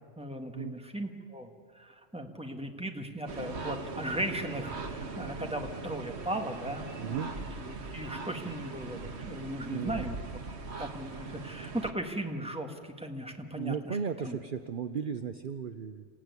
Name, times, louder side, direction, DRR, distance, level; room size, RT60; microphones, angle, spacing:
voice 1, 0.2-1.5 1.7-7.3 7.6-10.2 10.8-14.4, right 1 dB, 5° right, 3 dB, 1.6 m, -37 dB
sound 1, 3.3-11.9, right 3 dB, 75° right, 1.7 m, -40 dB
voice 2, 7.0-7.3 9.7-10.1 13.5-16.1, right 7 dB, 55° right, 9 dB, 0.9 m, -35 dB
28.0 x 15.0 x 9.6 m, 2.2 s
omnidirectional pair, 1.1 m